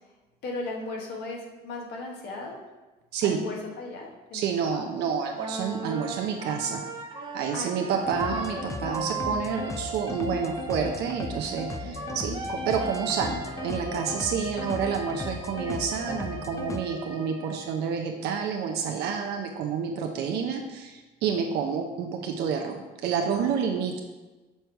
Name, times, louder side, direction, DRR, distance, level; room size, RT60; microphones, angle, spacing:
voice 1, 0.4-2.6 3.2-4.9 7.5-8.1 11.8-12.2 14.6-14.9 20.3-20.4, left 3 dB, 75° left, 0 dB, 1.3 m, -37 dB
voice 2, 4.3-6.8 7.3-24.0, right 6 dB, 75° right, 2 dB, 0.6 m, -29 dB
Wind instrument woodwind instrument, 5.3-17.8, right 3 dB, 30° right, 1.1 m, -37 dB
sound 1, 8.1-16.8, left 4 dB, 20° left, 0.4 m, -37 dB
6.6 x 3.2 x 4.5 m, 1.2 s
cardioid pair, 110°, 17 cm